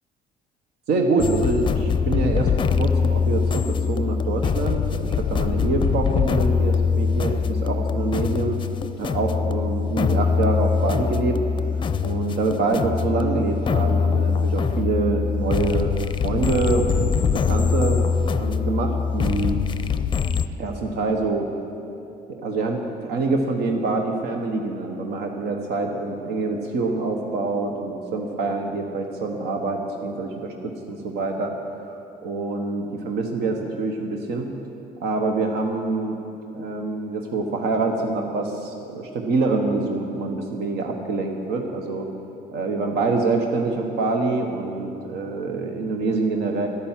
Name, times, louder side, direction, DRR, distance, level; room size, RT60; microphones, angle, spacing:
voice 1, 0.9-2.5 2.8-8.6 9.0-11.4 12.0-15.9 16.2-18.0 18.4-19.6 20.6-21.5 22.4-31.5 31.9-34.5 35.0-36.2 36.5-42.1 42.5-46.7, right 3 dB, 75° right, 2 dB, 1.2 m, -25 dB
sound 1, 1.2-20.5, left 6 dB, 30° left, 0.5 m, -23 dB
11.5 x 10.0 x 7.5 m, 2.7 s
cardioid pair, 110°, 17 cm